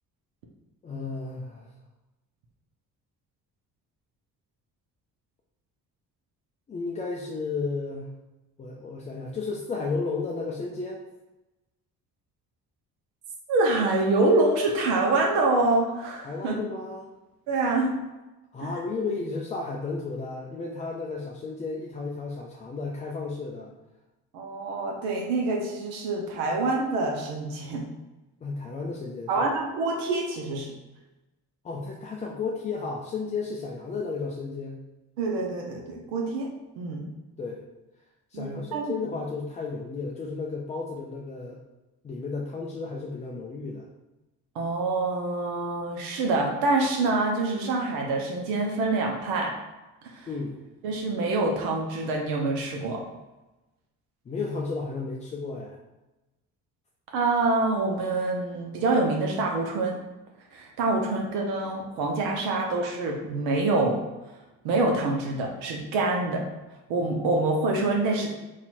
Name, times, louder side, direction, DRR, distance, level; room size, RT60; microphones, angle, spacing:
voice 1, 0.8-1.7 6.7-8.1 8.6-11.0 16.2-17.1 18.5-23.7 28.4-29.5 31.6-34.8 37.4-37.6 38.3-41.6 42.0-43.9 50.3-50.6 54.3-55.8, left 4 dB, 15° left, -2 dB, 0.3 m, -33 dB
voice 2, 13.5-16.5 17.5-18.0 24.3-27.8 29.3-30.7 35.2-37.0 38.3-38.9 44.5-49.5 50.1-50.3 50.8-53.0 57.1-60.0 60.5-64.0 64.6-66.5 66.9-68.3, right 2 dB, 60° right, 0 dB, 0.8 m, -26 dB
4.1 x 2.5 x 4.2 m, 1.0 s
figure-of-eight pair, 45°, 48 cm